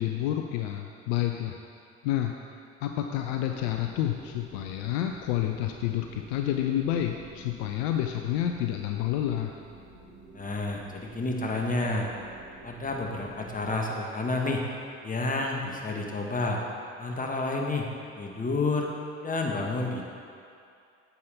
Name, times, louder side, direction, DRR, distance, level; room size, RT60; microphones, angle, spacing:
voice 1, 0.0-1.6 2.0-2.3 2.8-9.5, left 11 dB, 70° left, 4 dB, 0.5 m, -29 dB
sound 1, 3.2-13.7, right 2 dB, 70° right, 1.4 m, -51 dB
voice 2, 10.3-12.1 12.6-14.6 15.0-16.6 17.0-17.9 18.1-18.9 19.2-20.1, left 2 dB, 25° left, 1 dB, 1.4 m, -30 dB
9.3 x 7.0 x 3.5 m, 2.5 s
figure-of-eight pair, 50°, 34 cm